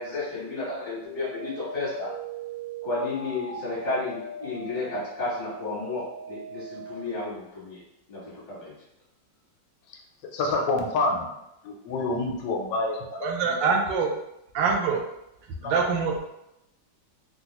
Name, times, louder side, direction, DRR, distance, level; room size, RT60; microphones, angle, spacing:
voice 1, 0.0-2.1 2.8-7.8 8.1-8.7, left 2 dB, 30° left, -9 dB, 1.1 m, -32 dB
sound 1, 1.0-6.9, right 2 dB, 60° left, 0.9 m, -40 dB
voice 2, 9.9-11.3 11.6-13.6 15.6-15.8, left 2 dB, 85° left, 1 dB, 1.2 m, -28 dB
voice 3, 13.2-14.1 14.5-15.0 15.6-16.2, right 5 dB, 85° right, 2 dB, 1.3 m, -24 dB
3.5 x 2.3 x 2.9 m, 0.85 s
omnidirectional pair, 1.9 m